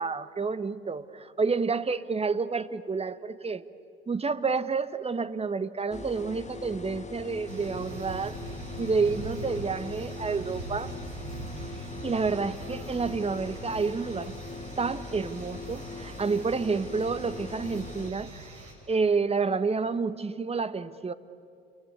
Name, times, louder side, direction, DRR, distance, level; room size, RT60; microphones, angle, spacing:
voice 1, 0.0-3.6 4.1-8.4 8.8-10.9 12.0-14.3 14.8-18.5 18.9-21.1, right 4 dB, 20° right, 13 dB, 1.1 m, -29 dB
sound 1, 5.9-18.1, left 4 dB, 20° left, 1.8 m, -42 dB
sound 2, 7.5-18.7, right 1 dB, 65° right, 6.2 m, -42 dB
29.0 x 23.0 x 8.3 m, 2.4 s
figure-of-eight pair, 60°, 31 cm